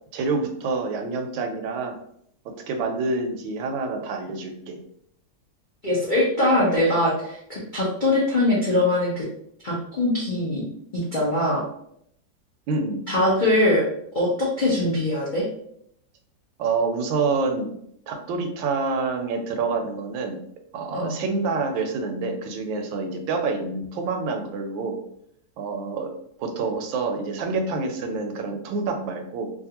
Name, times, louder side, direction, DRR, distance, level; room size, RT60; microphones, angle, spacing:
voice 1, 0.1-2.0 2.4-4.8 12.7-13.1 16.6-17.7 18.1-20.4 20.7-25.0 25.6-26.1 26.4-29.5, right 4 dB, 85° right, 4 dB, 1.3 m, -27 dB
voice 2, 5.8-7.4 7.7-9.3 9.6-10.6 10.9-11.6 13.1-13.8 14.1-15.4 20.9-21.1, left 1 dB, 80° left, -7 dB, 0.4 m, -22 dB
3.2 x 2.4 x 2.8 m, 0.71 s
omnidirectional pair, 2.1 m